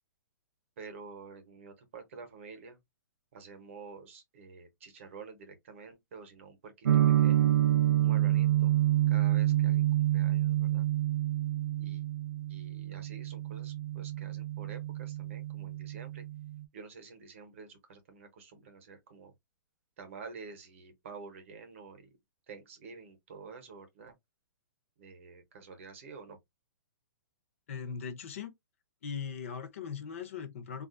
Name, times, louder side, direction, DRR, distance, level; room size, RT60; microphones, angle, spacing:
voice 1, 0.8-2.8 3.3-7.5 8.0-8.7 9.1-10.9 11.8-12.0 12.5-16.2 16.7-19.3 20.0-22.1 22.5-24.1 25.0-26.4, right 5 dB, 40° right, 0.8 m, -49 dB
sound 1, 6.8-16.6, right 13 dB, 80° right, 0.5 m, -28 dB
voice 2, 27.7-28.5 29.0-30.9, left 6 dB, 40° left, 0.6 m, -39 dB
3.6 x 2.3 x 2.4 m
hypercardioid pair, 175°, 11 cm